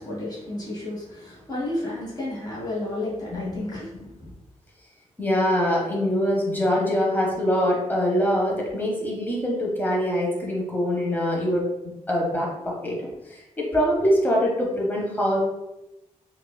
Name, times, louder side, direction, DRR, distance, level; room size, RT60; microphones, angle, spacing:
voice 1, 0.0-4.3, left 1 dB, 35° left, -7 dB, 1.4 m, -32 dB
voice 2, 3.3-3.6 5.2-11.7 12.1-15.4, equal, 15° left, -3 dB, 0.9 m, -24 dB
4.6 x 2.4 x 2.2 m, 0.95 s
wide cardioid pair, 130°, 13 cm